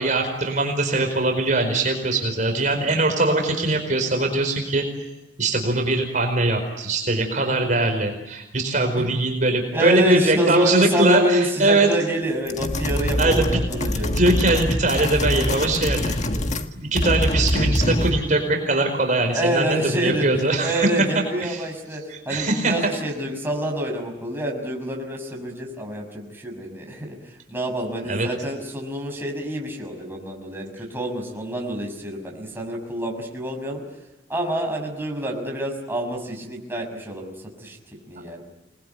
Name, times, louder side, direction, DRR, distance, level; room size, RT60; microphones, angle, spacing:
voice 1, 0.0-4.9 5.4-11.9 13.2-13.6 14.1-21.0 21.4-21.6 22.1-22.7 28.1-28.3, right 2 dB, 45° right, 4 dB, 4.8 m, -22 dB
voice 2, 9.7-14.2 19.3-20.3 20.6-27.2 27.5-33.8 34.3-37.3 37.6-37.8 38.1-38.4, right 1 dB, 10° right, 0 dB, 6.2 m, -26 dB
sound 1, 12.5-16.7 16.9-18.3, left 1 dB, 40° left, 1.6 m, -24 dB
29.0 x 21.5 x 9.5 m, 0.96 s
head